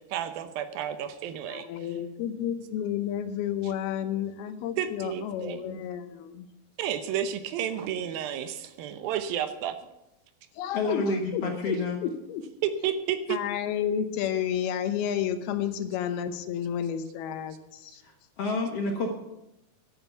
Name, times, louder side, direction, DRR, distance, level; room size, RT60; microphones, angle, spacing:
voice 1, 0.0-1.9 4.8-5.8 6.8-9.8 12.6-13.4 17.9-18.0, right 9 dB, 75° right, 10 dB, 2.6 m, -31 dB
voice 2, 1.5-6.5 10.6-11.8 12.0-12.4 13.3-18.0, left 9 dB, 85° left, 10 dB, 2.9 m, -31 dB
voice 3, 10.7-12.0 18.0-18.1 18.4-19.1, left 2 dB, 60° left, 2 dB, 1.6 m, -29 dB
11.0 x 9.0 x 8.2 m, 0.91 s
omnidirectional pair, 4.3 m